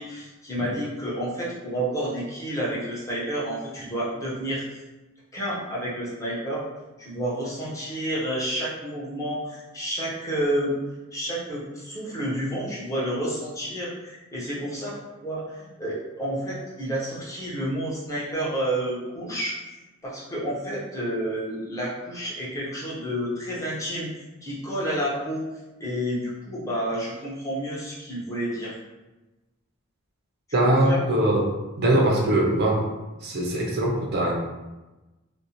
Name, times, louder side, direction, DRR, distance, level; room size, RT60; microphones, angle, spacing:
voice 1, 0.0-4.6 5.3-6.6 7.0-10.7 11.1-15.0 15.2-19.6 20.0-24.1 24.4-25.4 25.8-28.7 30.7-31.1, right 1 dB, 15° left, -7 dB, 0.7 m, -30 dB
voice 2, 30.5-31.4 31.8-32.8 33.2-34.3, right 1 dB, 45° right, -2 dB, 0.5 m, -21 dB
2.5 x 2.0 x 2.8 m, 1.1 s
head